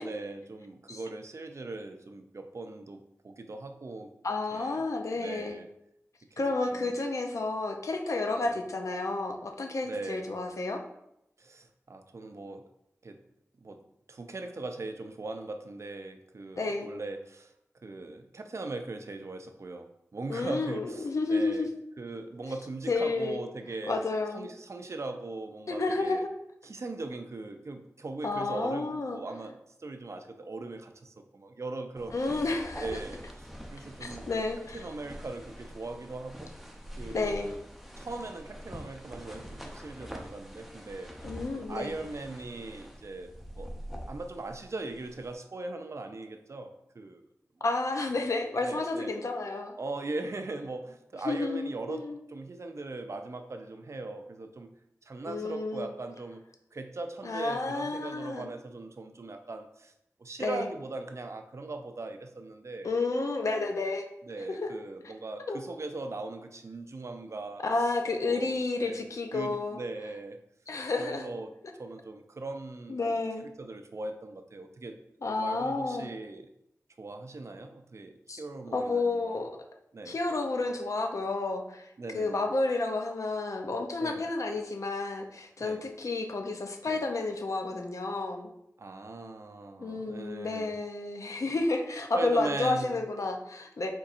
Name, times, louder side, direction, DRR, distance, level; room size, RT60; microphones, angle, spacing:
voice 1, 0.0-4.1 4.5-4.8 5.2-5.7 6.3-6.4 6.7-7.0 8.4-8.6 9.8-10.3 11.4-12.7 13.0-13.2 13.6-17.5 17.8-21.7 22.0-24.0 24.3-26.2 26.6-32.2 32.8-33.2 33.7-34.3 34.7-36.5 37.0-37.6 38.0-41.1 41.5-43.3 43.6-43.7 44.1-47.2 48.6-49.2 49.8-54.7 55.1-56.4 56.7-59.9 60.2-63.3 64.2-67.6 68.2-69.0 69.3-70.4 71.0-71.5 71.8-75.0 75.4-76.5 77.0-79.4 79.9-80.2 82.0-82.4 84.0-84.2 85.6-85.8 86.9-87.0 88.8-90.7 92.1-93.0, right 2 dB, 60° right, 7 dB, 0.5 m, -40 dB
voice 2, 4.2-5.6 6.4-10.8 16.6-16.9 20.3-21.7 22.9-23.4 23.9-24.5 25.7-26.2 28.2-29.2 32.1-33.0 34.0-34.8 37.1-37.5 41.2-41.9 47.6-49.8 51.2-52.2 55.3-55.9 57.2-58.5 60.4-60.7 62.8-64.1 64.5-64.7 65.5-65.6 67.6-69.8 70.7-71.3 72.9-73.5 75.2-76.1 78.3-78.4 78.7-79.5 80.1-88.5 89.8-93.9, left 3 dB, 75° left, 4 dB, 0.6 m, -31 dB
sound 1, 32.0-45.3, equal, ahead, 0.7 m, -45 dB
4.4 x 4.1 x 2.5 m, 0.81 s
wide cardioid pair, 50°, 6 cm